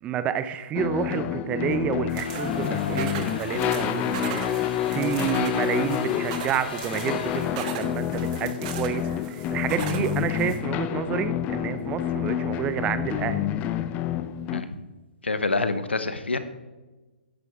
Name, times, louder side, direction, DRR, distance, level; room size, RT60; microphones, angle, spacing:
voice 1, 0.0-13.5, right 8 dB, 20° right, 12 dB, 0.6 m, -29 dB
sound 1, 0.7-14.6, left 11 dB, 25° left, 0.6 m, -28 dB
sound 2, 2.1-10.6, right 8 dB, 35° right, 1.5 m, -39 dB
sound 3, 2.2-7.4, left 3 dB, 50° left, 2.9 m, -37 dB
voice 2, 15.2-16.4, left 3 dB, 80° left, 11 dB, 1.2 m, -26 dB
14.0 x 10.5 x 3.6 m, 1.2 s
figure-of-eight pair, 125°, 6 cm